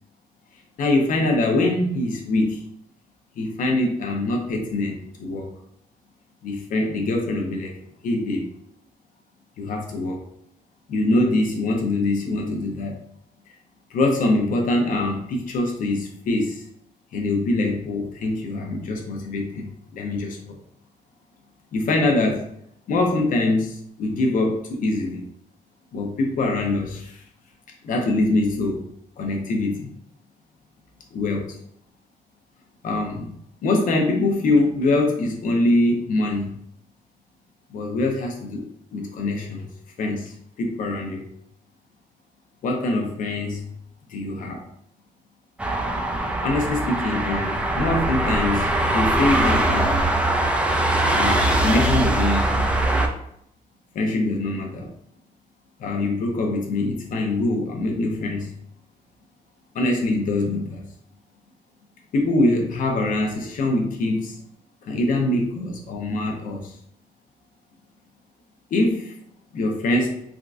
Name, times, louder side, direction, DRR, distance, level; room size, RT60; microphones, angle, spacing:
voice 1, 0.8-2.6 3.4-5.5 6.4-7.7 8.0-8.4 9.6-10.2 10.9-13.0 13.9-16.6 17.1-20.6 21.7-22.4 22.9-25.2 25.9-27.2 27.8-28.8 29.2-29.9 31.1-31.5 32.8-33.3 33.6-36.5 37.7-38.6 38.9-39.7 40.0-41.2 42.6-43.7 44.1-44.6 46.4-50.1 51.1-52.7 53.9-54.9 55.8-58.5 59.7-60.8 62.1-64.4 64.8-66.7 68.7-69.1 69.5-70.2, left 2 dB, 65° left, 1 dB, 0.7 m, -23 dB
sound 1, 45.6-53.1, right 1 dB, 10° right, 0.4 m, -22 dB
3.6 x 2.4 x 2.5 m, 0.71 s
cardioid pair, 125°, 15 cm